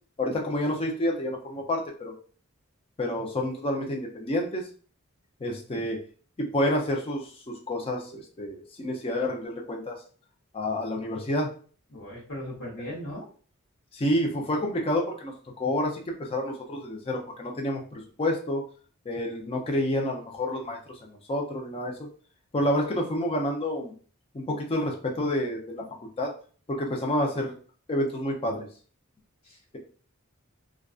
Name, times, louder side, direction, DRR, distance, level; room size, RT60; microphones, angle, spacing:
voice 1, 0.2-2.1 3.0-4.6 5.4-6.0 6.4-10.0 10.5-11.5 13.9-18.6 19.1-21.9 22.5-23.9 24.3-25.8 26.2-26.3 26.7-27.5 27.9-28.7, left 1 dB, 25° left, 0 dB, 0.5 m, -29 dB
voice 2, 11.9-13.3 29.4-29.8, equal, 75° left, -3 dB, 0.9 m, -38 dB
2.4 x 2.3 x 2.3 m, 0.41 s
head